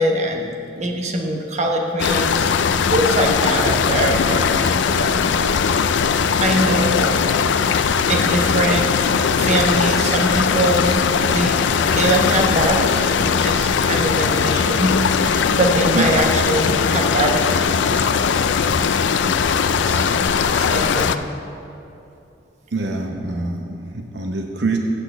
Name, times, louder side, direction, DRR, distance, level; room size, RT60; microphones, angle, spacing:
voice 1, 0.0-5.2 6.4-7.1 8.1-8.9 9.4-11.0 11.3-14.9 15.2-18.5 19.8-20.1 20.6-21.1, right 1 dB, 40° right, 1 dB, 1.0 m, -22 dB
sound 1, 2.0-21.2, left 6 dB, 80° left, 0.4 m, -19 dB
voice 2, 22.7-24.8, right 3 dB, 70° right, 2 dB, 0.8 m, -25 dB
8.2 x 6.3 x 7.9 m, 2.7 s
head